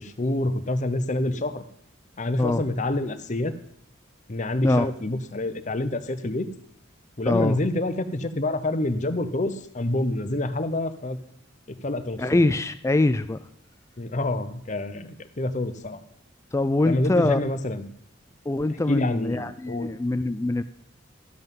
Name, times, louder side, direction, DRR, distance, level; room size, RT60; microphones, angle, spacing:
voice 1, 0.0-1.6 2.2-3.5 4.3-6.5 7.2-11.2 11.7-12.4 14.0-16.0 16.9-17.9 18.9-19.9, left 1 dB, 40° left, 10 dB, 0.8 m, -27 dB
voice 2, 7.3-7.6 12.2-13.4 16.5-17.4 18.5-20.6, left 2 dB, 15° left, 12 dB, 0.3 m, -23 dB
12.5 x 7.8 x 5.4 m, 0.68 s
head